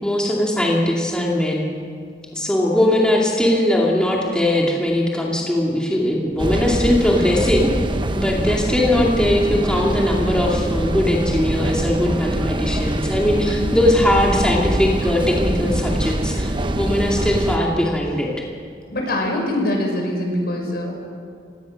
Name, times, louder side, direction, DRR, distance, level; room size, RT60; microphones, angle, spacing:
voice 1, 0.0-1.7 2.3-7.7 8.1-18.3, left 1 dB, 5° left, -3 dB, 2.4 m, -20 dB
sound 1, 6.4-17.6, right 1 dB, 30° right, 1.0 m, -24 dB
voice 2, 18.9-20.9, left 1 dB, 60° left, 1 dB, 5.8 m, -23 dB
29.5 x 17.5 x 6.4 m, 2.1 s
head